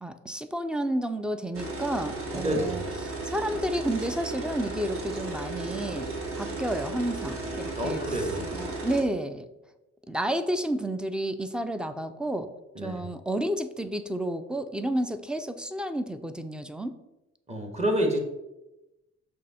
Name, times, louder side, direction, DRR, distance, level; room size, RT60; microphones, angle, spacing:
voice 1, 0.0-6.1 6.4-9.5 10.1-12.5 12.8-16.9, right 1 dB, 5° right, 10 dB, 0.4 m, -31 dB
sound 1, 1.5-9.0, right 2 dB, 45° right, 1.5 m, -35 dB
voice 2, 2.3-2.8 7.8-8.5 12.7-13.1 17.5-18.2, equal, 20° right, 2 dB, 1.4 m, -28 dB
6.4 x 2.8 x 5.6 m, 0.97 s
cardioid pair, 90°, 30 cm